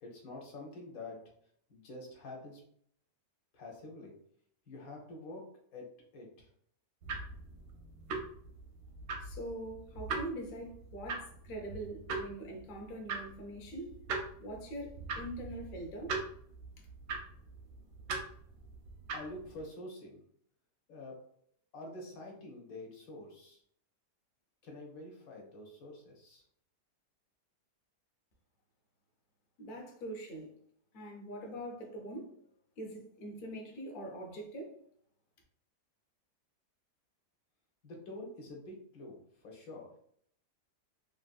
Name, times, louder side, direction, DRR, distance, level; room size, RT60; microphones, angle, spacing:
voice 1, 0.0-1.2 1.7-2.6 3.5-4.1 4.7-5.9 6.1-6.5 19.1-20.2 20.9-21.2 21.7-23.6 24.6-26.4 37.8-39.9, left 2 dB, 60° left, 1.2 m, -47 dB
sound 1, 7.0-19.6, right 4 dB, 85° right, 1.2 m, -42 dB
voice 2, 9.2-14.0 14.4-16.2 29.6-30.5 30.9-32.3 32.8-34.8, right 1 dB, 80° left, 0.4 m, -43 dB
3.3 x 2.5 x 2.3 m
omnidirectional pair, 1.8 m